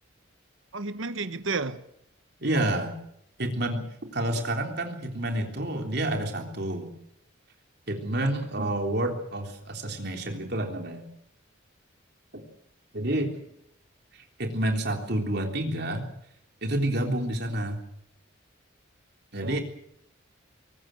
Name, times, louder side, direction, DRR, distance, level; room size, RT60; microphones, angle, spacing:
voice 1, 0.7-1.8 19.4-19.6, right 4 dB, 80° right, 1.2 m, -31 dB
voice 2, 2.4-3.0 3.4-3.9 4.1-6.9 7.9-11.1 12.3-12.4 12.9-13.3 14.4-16.1 16.6-17.8 19.3-19.6, right 1 dB, 55° right, 3.6 m, -29 dB
23.0 x 19.0 x 7.8 m
head